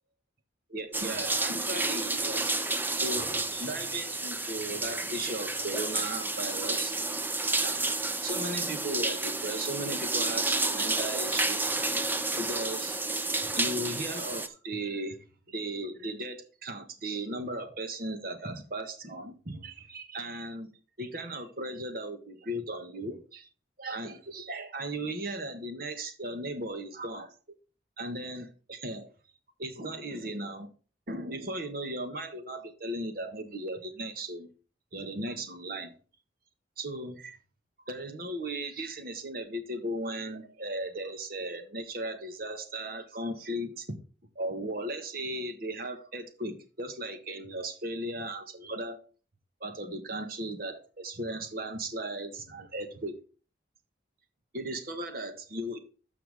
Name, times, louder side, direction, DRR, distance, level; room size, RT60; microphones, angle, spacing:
voice 1, 0.7-2.5 2.9-7.0 7.6-7.9 8.2-11.8 12.1-13.0 13.4-15.2 15.5-20.7 21.0-23.5 23.8-27.3 28.0-29.1 29.6-30.7 31.1-34.5 34.9-35.9 36.8-37.4 37.9-44.0 44.3-49.0 49.6-53.2 54.5-55.8, right 1 dB, 50° right, 1.4 m, -36 dB
sound 1, 0.9-14.5, right 2 dB, 10° right, 0.6 m, -30 dB
12.5 x 5.8 x 3.5 m
head